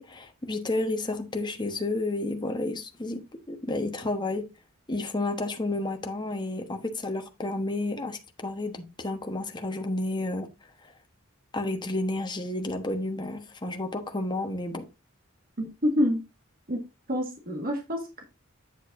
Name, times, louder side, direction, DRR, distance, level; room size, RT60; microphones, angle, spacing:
voice 1, 0.0-4.5 4.9-10.5 11.5-14.8, left 2 dB, 20° left, 1.2 m, -31 dB
voice 2, 15.6-16.2 16.7-16.8 17.1-18.2, equal, 45° right, 1.7 m, -27 dB
8.6 x 7.2 x 2.6 m
head